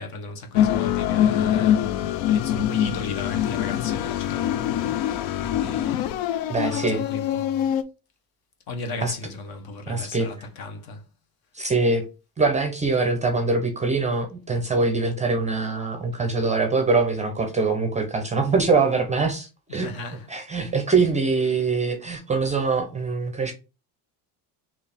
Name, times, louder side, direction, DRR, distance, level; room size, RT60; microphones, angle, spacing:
voice 1, 0.0-6.1 6.6-7.7 8.7-11.0 19.7-20.3 21.5-21.6, left 3 dB, 55° left, 1.2 m, -36 dB
sound 1, 0.5-7.8, left 11 dB, 75° left, 0.6 m, -24 dB
voice 2, 6.5-7.0 9.0-9.1 9.9-10.3 11.5-12.0 12.4-19.9 20.3-23.5, right 4 dB, 15° right, 0.5 m, -23 dB
4.5 x 2.9 x 3.4 m
cardioid pair, 140°, 44 cm